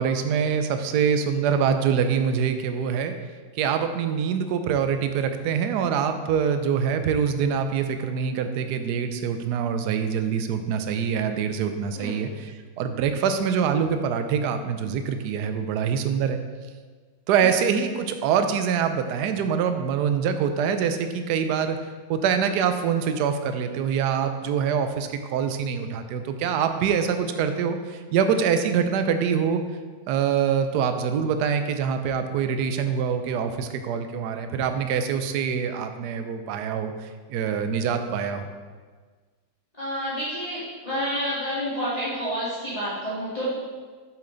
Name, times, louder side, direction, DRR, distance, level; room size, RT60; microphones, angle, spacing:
voice 1, 0.0-3.1 3.6-16.4 17.3-21.8 22.1-29.6 30.1-38.5, right 7 dB, 70° right, 8 dB, 1.1 m, -25 dB
voice 2, 39.8-43.5, equal, 20° left, -13 dB, 2.0 m, -29 dB
7.5 x 7.4 x 3.9 m, 1.5 s
omnidirectional pair, 2.0 m